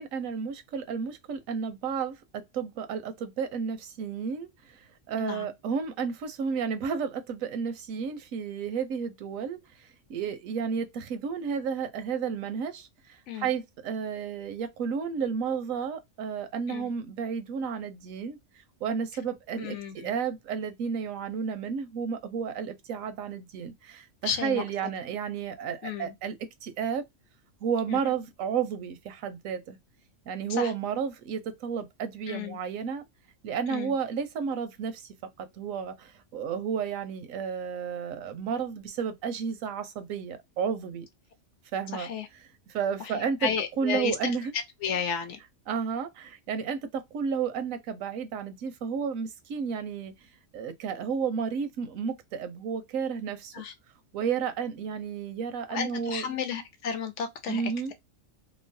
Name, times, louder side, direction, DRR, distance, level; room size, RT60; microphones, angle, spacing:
voice 1, 0.0-18.4 18.8-26.4 26.6-27.1 27.6-29.8 30.3-33.1 33.4-41.1 41.7-42.1 42.7-43.5 43.8-44.5 45.7-50.1 50.5-53.5 54.1-56.2 57.5-57.9, right 6 dB, 85° right, 1.0 m, -32 dB
voice 2, 5.1-5.5 13.3-13.5 16.7-16.9 19.6-20.1 24.2-24.6 25.8-26.1 27.9-28.0 30.5-30.7 32.3-32.6 33.7-34.0 41.9-42.3 43.0-45.4 53.5-53.7 55.7-57.9, left 7 dB, 70° left, 1.0 m, -33 dB
3.0 x 2.0 x 2.5 m
omnidirectional pair, 1.4 m